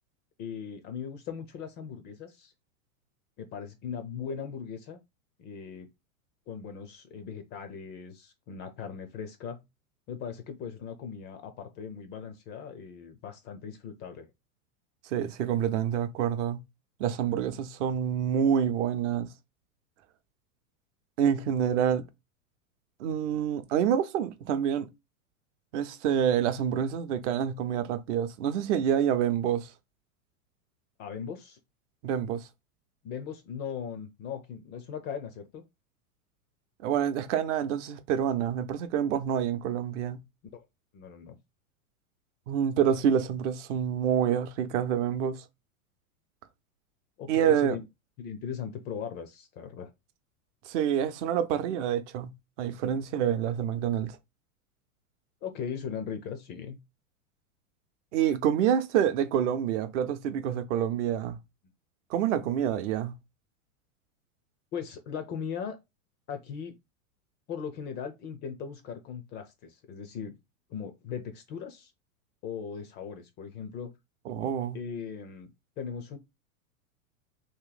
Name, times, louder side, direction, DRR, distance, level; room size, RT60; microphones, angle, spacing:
voice 1, 0.4-2.5 3.4-5.0 5.4-5.9 6.5-9.6 10.1-14.3 31.0-31.6 33.0-35.6 40.5-40.6 40.9-41.4 47.2-47.8 48.2-49.9 55.4-56.8 61.3-61.4 64.7-65.8 66.3-66.7 67.5-70.3 70.7-71.9 72.4-73.9 74.7-75.5 75.8-76.2, left 7 dB, 25° left, 0.4 m, -39 dB
voice 2, 15.1-16.6 17.0-19.3 21.2-22.0 23.0-24.9 25.7-29.7 32.0-32.5 36.8-40.2 42.5-45.4 47.3-47.8 50.7-52.3 52.6-54.1 58.1-61.4 62.1-63.1 74.3-74.8, right 9 dB, 55° right, 0.7 m, -27 dB
3.0 x 2.7 x 3.8 m
hypercardioid pair, 125°, 43 cm